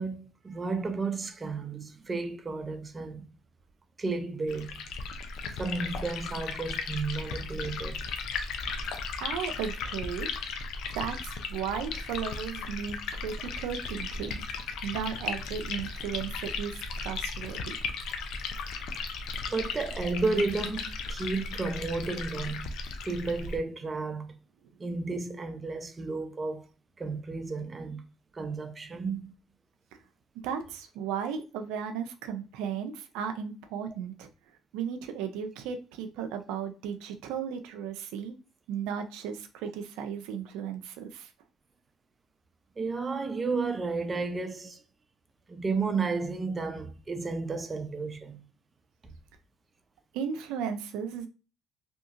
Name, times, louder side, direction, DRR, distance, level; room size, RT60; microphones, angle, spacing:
voice 1, 0.0-3.3 4.0-4.8 5.6-8.0 19.5-22.7 23.0-24.3 24.8-26.7 27.0-28.0 28.3-29.3 42.8-44.8 45.5-48.4, right 3 dB, 30° right, 0.5 m, -32 dB
Liquid, 4.5-23.6, left 4 dB, 75° left, 0.4 m, -36 dB
voice 2, 9.1-10.3 10.9-14.4 14.8-17.7 30.4-34.3 34.7-38.3 38.7-41.3 50.1-51.3, right 7 dB, 85° right, 0.4 m, -35 dB
2.7 x 2.7 x 2.5 m
supercardioid pair, 85°, 0 cm